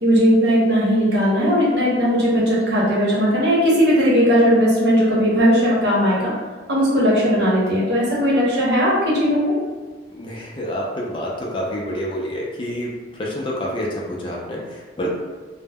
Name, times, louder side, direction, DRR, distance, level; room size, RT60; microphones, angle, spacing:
voice 1, 0.0-6.3 6.7-9.5, equal, 60° right, -6 dB, 0.9 m, -17 dB
voice 2, 10.1-15.1, equal, 25° left, -3 dB, 0.4 m, -28 dB
2.1 x 2.0 x 3.4 m, 1.4 s
head